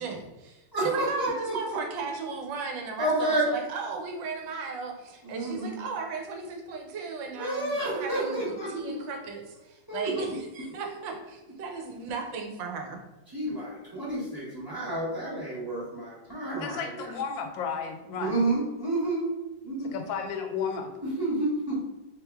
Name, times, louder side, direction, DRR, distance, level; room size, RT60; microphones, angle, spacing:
voice 1, 0.0-13.0, right 5 dB, 90° right, 3 dB, 1.4 m, -36 dB
voice 2, 0.7-1.8 3.0-3.5 5.2-5.7 7.4-8.9 9.9-10.3 13.3-17.1 18.2-19.2 19.6-19.9 21.0-21.8, right 2 dB, 20° right, -6 dB, 0.6 m, -30 dB
voice 3, 16.6-18.4 19.9-20.9, left 6 dB, 90° left, 6 dB, 1.3 m, -33 dB
3.7 x 2.9 x 3.4 m, 1.0 s
omnidirectional pair, 2.0 m